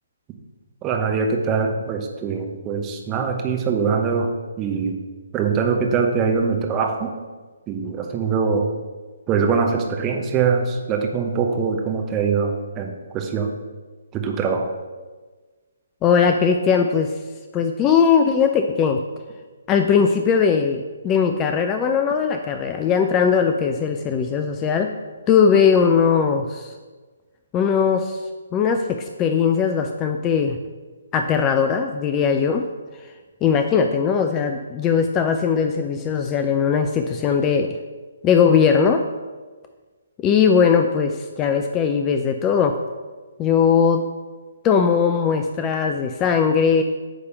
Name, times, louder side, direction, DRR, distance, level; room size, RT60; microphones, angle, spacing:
voice 1, 0.8-5.0 5.3-7.1 7.7-8.7 9.3-13.5 14.1-14.7, right 5 dB, 20° right, 2 dB, 0.9 m, -23 dB
voice 2, 16.0-17.1 17.5-19.0 19.7-24.9 25.3-26.7 27.5-28.2 28.5-30.6 31.1-32.7 33.4-37.8 38.2-39.0 40.2-42.8 43.4-44.0 44.6-46.8, left 6 dB, 20° left, 6 dB, 0.4 m, -19 dB
8.8 x 3.4 x 6.7 m, 1.4 s
figure-of-eight pair, 135°, 0 cm